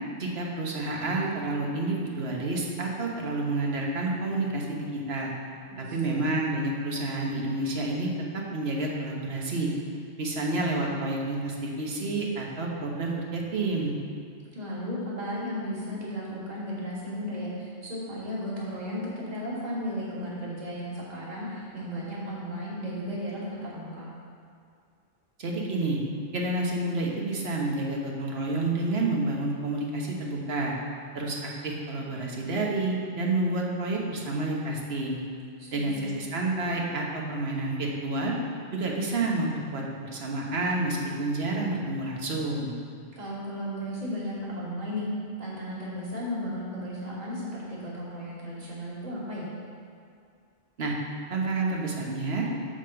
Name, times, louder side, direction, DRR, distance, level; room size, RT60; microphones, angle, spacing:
voice 1, 0.2-5.3 5.9-9.7 10.2-13.9 25.4-26.0 26.3-30.7 31.1-35.2 35.7-38.3 38.7-42.7 50.8-50.9 51.3-52.6, right 2 dB, 60° right, -1 dB, 1.3 m, -29 dB
voice 2, 5.7-6.2 14.5-24.1 35.6-36.1 43.1-45.1 45.4-49.5, equal, 35° right, -7 dB, 1.8 m, -35 dB
8.8 x 3.6 x 6.8 m, 2.3 s
omnidirectional pair, 1.2 m